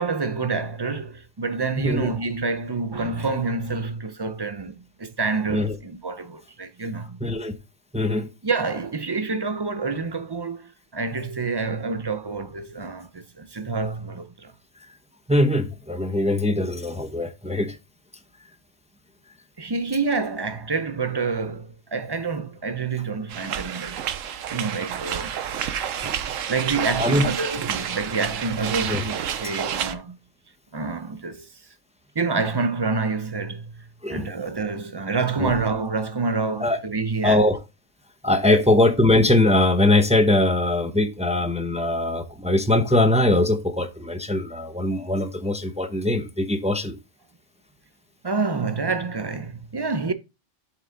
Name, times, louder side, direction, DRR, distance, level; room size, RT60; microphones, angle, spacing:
voice 1, 0.0-7.2 8.4-14.5 19.6-24.0 24.5-25.4 26.5-30.2 30.7-31.5 32.2-33.7 34.1-37.4 38.4-38.6 48.2-50.1, right 4 dB, 30° right, 0.4 m, -27 dB
voice 2, 1.8-2.1 5.5-5.8 7.2-7.5 7.9-8.3 15.3-17.8 27.0-27.2 28.9-29.0 34.0-34.3 35.4-35.5 36.6-36.8 37.2-37.6 38.2-47.0, left 1 dB, 5° right, 0.8 m, -21 dB
sound 1, 23.3-30.0, right 9 dB, 90° right, 1.1 m, -29 dB
7.6 x 5.8 x 3.9 m
omnidirectional pair, 1.3 m